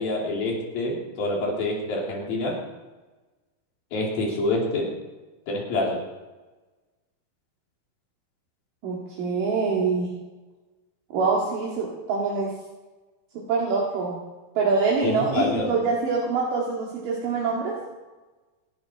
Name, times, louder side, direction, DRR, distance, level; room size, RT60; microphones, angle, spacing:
voice 1, 0.0-2.6 3.9-4.9 5.5-6.0 15.0-15.8, left 2 dB, 80° left, -2 dB, 5.2 m, -26 dB
voice 2, 8.8-10.1 11.1-12.5 13.4-14.2 14.6-17.8, right 4 dB, 70° right, -3 dB, 3.6 m, -25 dB
27.0 x 11.5 x 4.6 m, 1.2 s
omnidirectional pair, 4.1 m